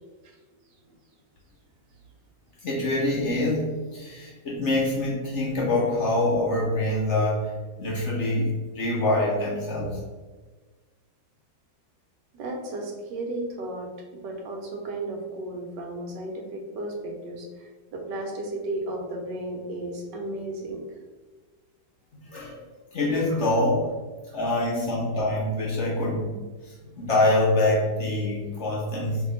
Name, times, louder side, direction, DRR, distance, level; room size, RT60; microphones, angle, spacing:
voice 1, 2.6-10.0 22.2-22.6 22.9-23.9 24.3-29.2, left 2 dB, 55° left, -4 dB, 0.9 m, -25 dB
voice 2, 12.3-20.8 23.3-23.5 24.3-24.4 26.8-27.0 29.0-29.2, right 2 dB, 90° right, 1 dB, 1.4 m, -34 dB
3.0 x 2.7 x 3.7 m, 1.3 s
omnidirectional pair, 1.8 m